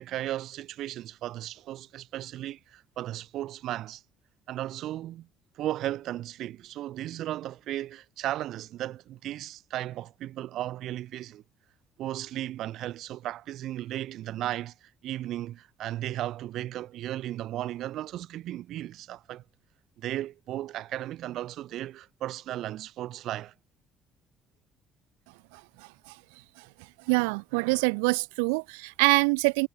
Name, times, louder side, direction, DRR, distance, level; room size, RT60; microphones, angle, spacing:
voice 1, 0.0-4.0 4.5-5.3 5.6-11.4 12.0-19.4 20.0-23.5, right 13 dB, 70° right, 4.5 m, -35 dB
voice 2, 27.1-29.7, right 33 dB, 85° right, 1.0 m, -24 dB
supercardioid pair, 65°, 0 cm